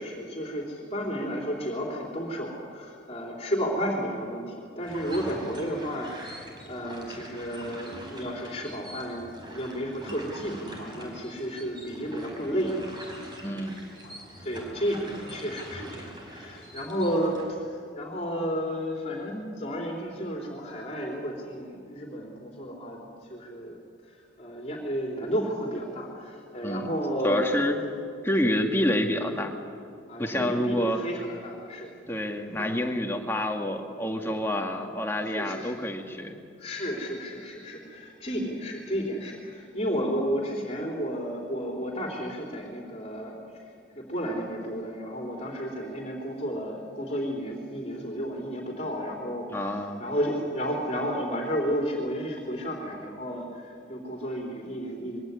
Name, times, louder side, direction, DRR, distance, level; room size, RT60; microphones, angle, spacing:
voice 1, 0.0-12.8 14.0-23.7 24.4-27.6 28.4-28.6 30.1-31.9 32.5-32.8 34.3-34.4 35.3-35.8 36.6-43.7 43.9-55.2, equal, 30° left, -1 dB, 3.3 m, -32 dB
sound 1, 4.8-17.5, equal, 25° right, 4.7 m, -43 dB
voice 2, 13.4-13.8 26.6-26.9 27.2-27.8 28.2-29.6 30.2-31.0 32.1-36.3 49.5-50.0, left 1 dB, 10° left, 2 dB, 1.9 m, -28 dB
22.5 x 17.5 x 9.7 m, 2.6 s
head